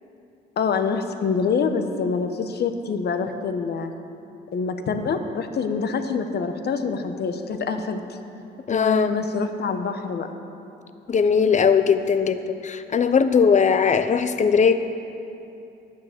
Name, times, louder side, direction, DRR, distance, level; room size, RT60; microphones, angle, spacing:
voice 1, 0.6-3.9 4.5-8.2 8.7-10.3, left 5 dB, 55° left, 8 dB, 1.0 m, -26 dB
voice 2, 8.7-9.1 11.1-14.8, left 6 dB, 35° left, 10 dB, 0.7 m, -19 dB
12.0 x 9.5 x 6.8 m, 2.8 s
cardioid pair, 90°, 20 cm